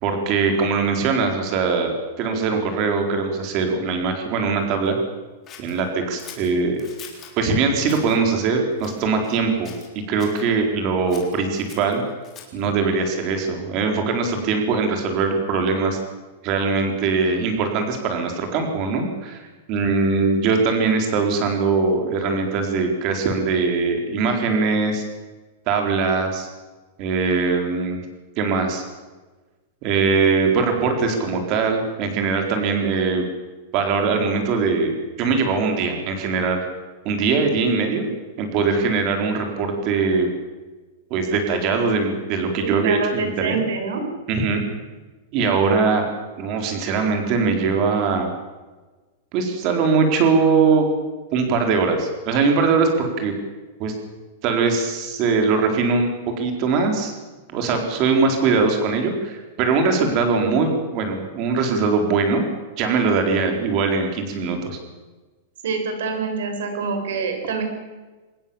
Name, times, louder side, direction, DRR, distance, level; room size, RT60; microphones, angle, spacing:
voice 1, 0.0-5.0 5.6-6.8 7.4-9.7 10.1-12.0 12.5-16.0 16.4-25.0 25.7-26.5 27.0-28.0 28.4-28.8 29.8-33.3 33.7-36.7 37.0-38.1 38.4-40.3 41.1-43.6 44.3-44.6 45.3-46.1 46.4-48.3 49.3-50.9 51.3-53.3 53.8-53.9 54.4-56.1 56.4-57.2 57.5-62.4 62.8-64.8, right 4 dB, 30° right, 4 dB, 4.3 m, -21 dB
Scissors, 5.5-7.4 7.8-8.2 8.8-9.4 9.6-10.4 11.1-12.7, left 8 dB, 20° left, 3.9 m, -43 dB
voice 2, 42.6-44.0 45.5-45.6 65.6-67.6, right 5 dB, 75° right, 5 dB, 6.8 m, -26 dB
24.5 x 20.0 x 7.3 m, 1.3 s
supercardioid pair, 180°, 0 cm